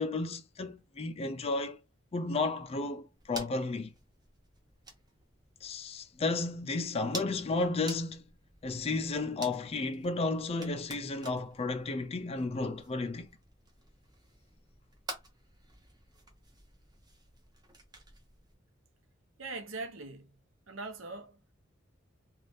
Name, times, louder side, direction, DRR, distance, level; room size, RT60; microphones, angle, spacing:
voice 1, 0.0-1.8 2.1-3.9 5.6-8.2 8.6-13.3, left 3 dB, 30° left, 0.4 m, -33 dB
sound 1, 3.1-18.5, right 2 dB, 20° right, 0.7 m, -50 dB
voice 2, 19.4-20.4 20.7-21.5, right 3 dB, 90° right, 0.8 m, -41 dB
2.6 x 2.4 x 3.3 m
head